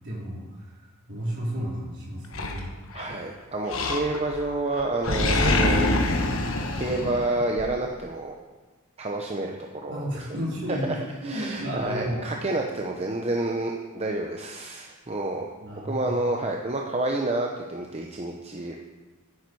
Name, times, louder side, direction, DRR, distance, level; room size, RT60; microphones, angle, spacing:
voice 1, 0.0-2.7 9.9-12.3 15.6-16.3, equal, 55° right, -5 dB, 4.1 m, -33 dB
Animal, 2.3-3.2 3.7-4.4 4.7-7.7, left 2 dB, 70° left, 1.2 m, -25 dB
voice 2, 2.9-5.9 6.7-8.3 9.0-10.1 10.7-10.8 11.2-15.5 15.8-18.8, right 2 dB, 30° right, 1 dB, 0.8 m, -29 dB
11.0 x 9.7 x 4.7 m, 1.3 s
head